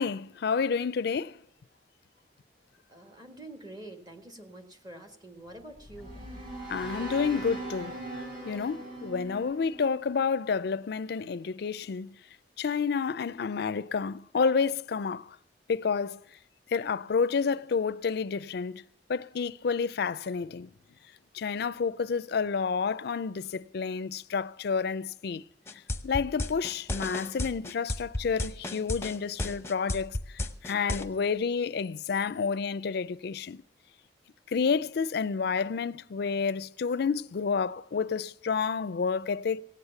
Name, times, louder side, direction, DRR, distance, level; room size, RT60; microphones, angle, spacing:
voice 1, 0.0-1.4 6.7-8.0 8.5-12.1 12.6-15.4 15.7-16.2 16.7-18.8 19.1-20.7 21.3-25.4 26.0-30.2 30.6-33.6 34.5-39.6, left 5 dB, 65° left, 0.4 m, -29 dB
voice 2, 2.9-6.1, right 1 dB, 25° right, 1.6 m, -46 dB
sound 1, 5.5-10.7, right 2 dB, 50° right, 3.7 m, -41 dB
sound 2, 25.7-31.0, left 2 dB, 15° left, 0.8 m, -32 dB
17.5 x 8.1 x 6.9 m
head